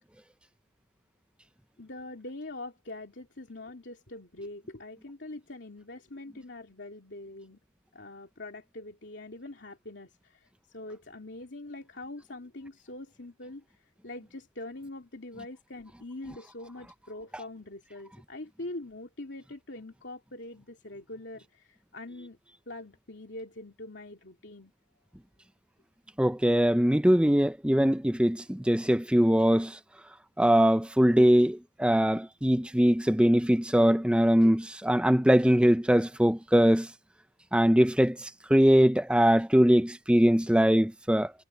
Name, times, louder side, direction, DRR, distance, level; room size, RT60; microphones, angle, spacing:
voice 1, 1.8-7.6 7.9-13.6 14.0-22.4 22.7-24.7 34.4-34.5, left 2 dB, 65° left, 2.9 m, -43 dB
voice 2, 26.2-29.8 30.4-36.9 37.5-41.3, equal, 5° right, 0.6 m, -22 dB
head